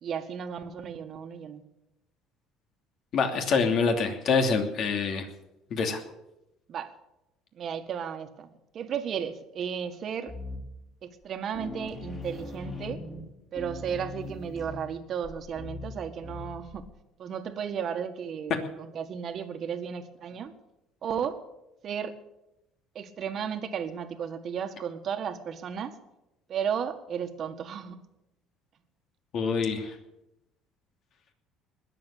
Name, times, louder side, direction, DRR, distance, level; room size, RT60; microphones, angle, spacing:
voice 1, 0.0-1.6 6.7-6.9 7.5-8.5 8.7-10.3 11.0-13.0 13.5-16.8 17.2-20.5 21.0-21.4 21.8-22.1 22.9-25.9 26.5-28.0, right 7 dB, 45° right, 8 dB, 1.7 m, -34 dB
voice 2, 3.1-5.3 5.7-6.0 29.3-29.9, left 5 dB, 50° left, 5 dB, 2.8 m, -25 dB
sound 1, 10.3-10.9 11.2-11.3 11.5-16.9, left 2 dB, 30° left, 4.4 m, -40 dB
20.5 x 7.8 x 8.4 m, 0.89 s
cardioid pair, 130°, 0 cm